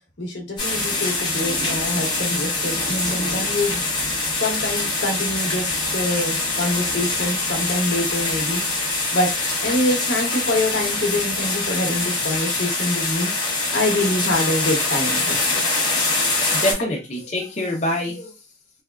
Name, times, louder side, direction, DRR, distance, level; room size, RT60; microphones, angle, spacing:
voice 1, 0.2-3.8 4.4-8.6 9.1-9.3 9.6-13.3 13.7-15.6, left 1 dB, 75° left, 1 dB, 0.8 m, -25 dB
sound 1, 0.6-16.7, left 2 dB, 25° left, 1.0 m, -24 dB
voice 2, 16.4-18.3, left 1 dB, 40° left, -2 dB, 0.6 m, -26 dB
3.3 x 2.3 x 2.2 m, 0.28 s
head